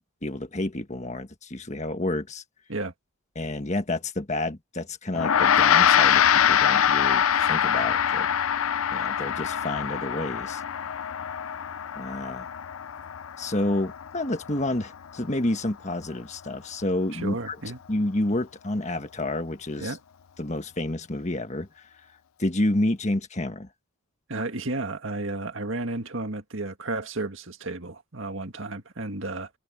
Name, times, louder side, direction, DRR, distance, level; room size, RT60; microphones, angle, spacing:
voice 1, 0.2-2.4 3.3-8.3 8.9-10.6 11.9-12.5 13.4-17.6 17.9-20.0 20.4-21.8 22.4-23.7, left 1 dB, 30° left, 1.5 m, -29 dB
Gong, 5.1-14.7, left 8 dB, 70° left, 0.5 m, -24 dB
voice 2, 17.1-17.8 19.8-20.0 24.3-29.5, right 2 dB, 60° right, 2.0 m, -32 dB
head